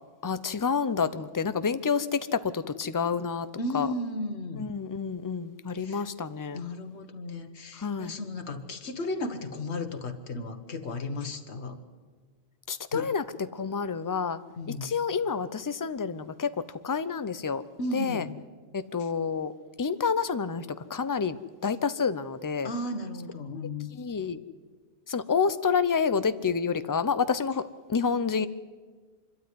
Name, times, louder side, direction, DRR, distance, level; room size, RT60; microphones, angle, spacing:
voice 1, 0.2-3.5 3.7-3.9 4.6-6.6 7.8-8.2 12.7-14.4 14.7-16.5 16.8-17.6 17.9-18.2 18.7-19.5 19.8-22.7 23.9-24.4 25.1-28.5, left 5 dB, 25° left, 13 dB, 0.5 m, -28 dB
voice 2, 3.6-4.7 5.7-6.1 6.5-11.8 12.9-13.1 14.6-15.0 17.8-18.4 19.0-19.1 22.6-23.9, left 2 dB, 85° left, 7 dB, 1.6 m, -34 dB
25.0 x 12.5 x 9.6 m, 1.5 s
omnidirectional pair, 1.1 m